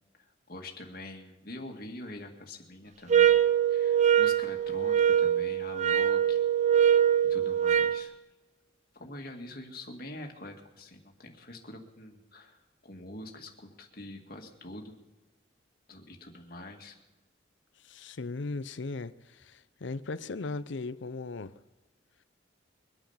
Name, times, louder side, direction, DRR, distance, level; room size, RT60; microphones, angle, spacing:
voice 1, 0.2-6.4 7.3-8.1 8.9-15.0 15.9-17.0, left 1 dB, 50° left, 2.0 m, -45 dB
sound 1, 3.1-8.0, right 9 dB, 35° right, 0.4 m, -23 dB
voice 2, 17.8-21.6, left 3 dB, 70° left, 0.6 m, -37 dB
23.0 x 9.1 x 5.6 m
head